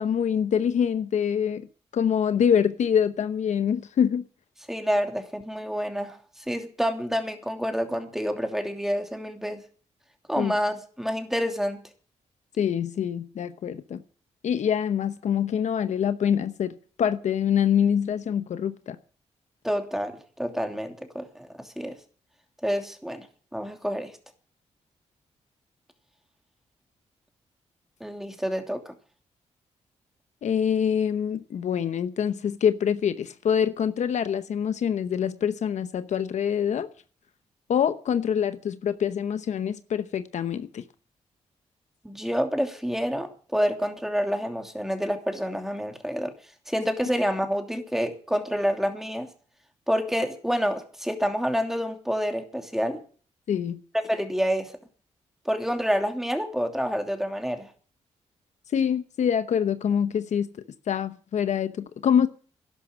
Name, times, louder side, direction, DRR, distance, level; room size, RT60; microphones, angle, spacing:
voice 1, 0.0-1.6 1.9-4.2 10.4-10.5 12.6-14.0 14.4-19.0 30.4-36.9 37.7-40.8 53.5-53.8 58.7-60.5 60.9-62.3, left 8 dB, 70° left, 0.9 m, -25 dB
voice 2, 4.7-6.2 6.5-9.6 10.3-11.8 19.6-21.9 22.6-23.3 23.5-24.1 28.0-28.9 42.0-46.3 46.7-49.3 49.9-53.0 53.9-54.7 55.4-57.7, equal, 5° right, 2.9 m, -28 dB
12.0 x 11.5 x 7.6 m
cardioid pair, 70°, 12 cm